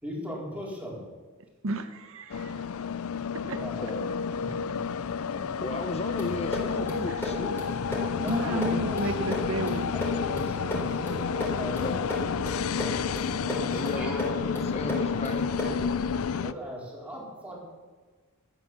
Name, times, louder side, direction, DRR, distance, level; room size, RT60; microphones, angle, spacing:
voice 1, 0.0-1.0 3.5-3.9 4.2-5.0 5.3-5.6 8.2-9.4 9.9-12.3 13.4-14.3 15.7-17.6, equal, 5° right, -4 dB, 4.1 m, -39 dB
voice 2, 1.6-2.7 3.5-3.6 7.1-7.2 8.2-9.9, right 2 dB, 65° right, 8 dB, 1.0 m, -32 dB
sound 1, 2.3-16.5, left 6 dB, 70° left, 0.5 m, -30 dB
voice 3, 5.6-7.6 8.4-8.8 11.8-12.1 13.7-15.5, left 2 dB, 30° left, 6 dB, 0.7 m, -35 dB
sound 2, 6.2-15.9, left 1 dB, 10° left, 4.1 m, -36 dB
13.5 x 9.4 x 7.3 m, 1.4 s
head